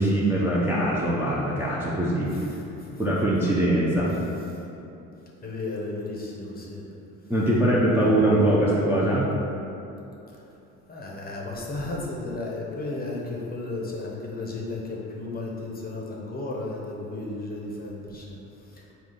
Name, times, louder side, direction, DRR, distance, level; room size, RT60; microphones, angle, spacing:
voice 1, 0.0-2.3 3.0-4.1 7.3-9.3, right 1 dB, 5° right, -7 dB, 0.5 m, -22 dB
voice 2, 2.2-3.2 4.5-4.6 5.4-6.9 7.8-8.0 10.3-10.4 10.9-18.9, left 2 dB, 25° left, -3 dB, 0.8 m, -34 dB
3.7 x 2.4 x 3.9 m, 2.9 s
hypercardioid pair, 65°, 39 cm